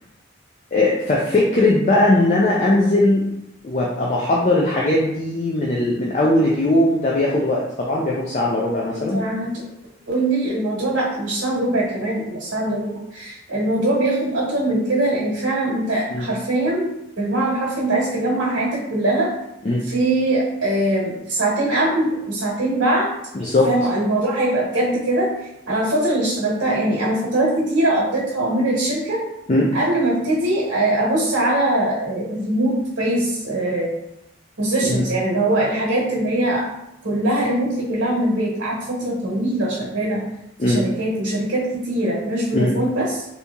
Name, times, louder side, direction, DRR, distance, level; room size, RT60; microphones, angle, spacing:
voice 1, 0.7-3.2 3.6-9.2 16.1-16.3 19.6-19.8 23.3-23.7 29.5-29.7 34.8-35.0 40.6-40.8 42.5-42.7, left 1 dB, 35° left, -4 dB, 0.4 m, -19 dB
voice 2, 8.9-9.5 10.1-16.9 17.2-19.3 19.8-23.1 23.4-25.3 25.7-29.2 29.7-33.9 34.6-36.7 37.0-40.2 40.6-43.3, right 1 dB, 85° right, -4 dB, 1.1 m, -22 dB
2.8 x 2.8 x 3.4 m, 0.87 s
head